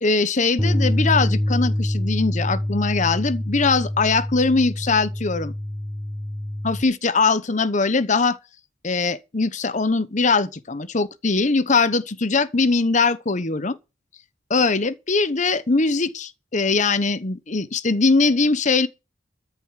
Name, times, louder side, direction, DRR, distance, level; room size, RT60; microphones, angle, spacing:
voice 1, 0.0-5.5 6.6-8.4 8.8-13.8 14.5-18.9, left 4 dB, 40° left, 0.9 m, -21 dB
Bass guitar, 0.6-6.8, left 1 dB, ahead, 1.0 m, -25 dB
13.5 x 7.1 x 7.3 m
head